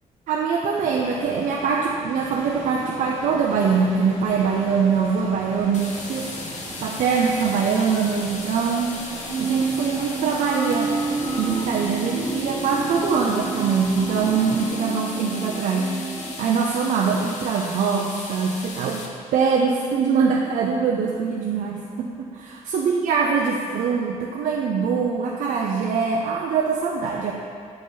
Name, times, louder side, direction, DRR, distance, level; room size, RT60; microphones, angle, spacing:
voice 1, 0.3-6.3 6.8-8.9 9.4-10.9 11.4-16.0 16.4-27.3, right 5 dB, 85° right, -1 dB, 0.5 m, -23 dB
sound 1, 0.7-14.7, right 1 dB, 45° right, 1.7 m, -39 dB
sound 2, 5.7-19.1, left 3 dB, 65° left, 0.9 m, -37 dB
sound 3, 9.2-16.3, right 4 dB, ahead, 1.9 m, -29 dB
8.3 x 5.0 x 3.9 m, 2.3 s
cardioid pair, 135°, 13 cm